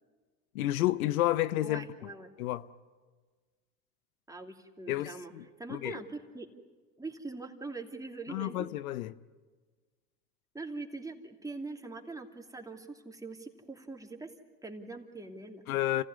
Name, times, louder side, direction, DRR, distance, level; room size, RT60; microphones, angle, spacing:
voice 1, 0.5-1.8 2.4-2.6 4.9-5.4 5.7-6.0 8.3-9.1 15.7-16.0, left 15 dB, 85° left, 0.7 m, -30 dB
voice 2, 1.6-2.3 4.3-5.3 5.6-6.5 7.0-8.7 10.5-14.3 14.6-15.6, right 3 dB, 10° right, 2.7 m, -42 dB
28.5 x 15.5 x 9.6 m
hypercardioid pair, 80°, 42 cm